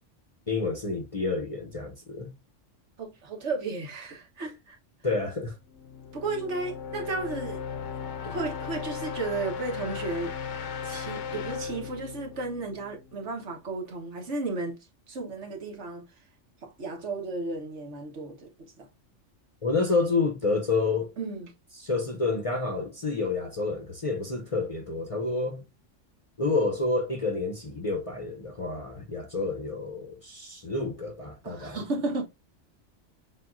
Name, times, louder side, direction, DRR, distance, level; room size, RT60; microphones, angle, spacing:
voice 1, 0.5-2.3 5.0-5.6 8.3-8.4 19.6-21.1 21.8-25.6 26.4-31.8, left 3 dB, 35° left, 0.6 m, -29 dB
voice 2, 3.0-4.8 6.1-7.6 8.2-10.4 10.8-14.8 15.1-16.1 16.6-18.9 21.2-21.5 31.4-32.2, right 3 dB, 70° right, 1.4 m, -34 dB
sound 1, 5.7-13.5, left 7 dB, 80° left, 1.0 m, -37 dB
7.2 x 2.4 x 2.5 m
omnidirectional pair, 1.3 m